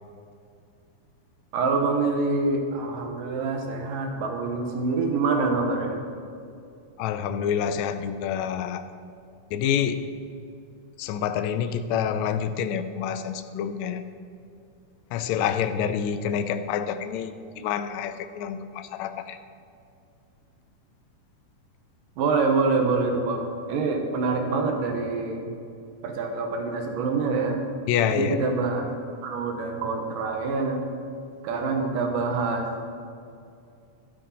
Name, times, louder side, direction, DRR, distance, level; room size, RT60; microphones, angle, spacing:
voice 1, 1.5-6.0 22.2-25.5 26.0-27.6 28.1-28.8 29.2-30.8 31.4-32.7, right 3 dB, 90° right, 3 dB, 2.9 m, -26 dB
voice 2, 7.0-8.8 9.5-10.1 11.0-14.0 15.1-19.4 27.9-28.5, left 8 dB, 80° left, 10 dB, 1.6 m, -27 dB
12.5 x 11.5 x 4.3 m, 2.4 s
omnidirectional pair, 3.7 m